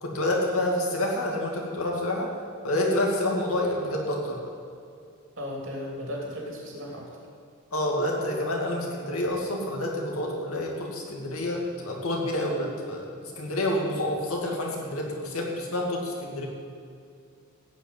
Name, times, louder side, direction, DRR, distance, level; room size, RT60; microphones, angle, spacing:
voice 1, 0.0-2.3 2.6-4.4 7.7-16.5, left 1 dB, 75° left, -1 dB, 2.4 m, -28 dB
voice 2, 5.4-7.1, left 1 dB, 60° right, -2 dB, 2.9 m, -35 dB
16.0 x 5.5 x 9.0 m, 2.3 s
head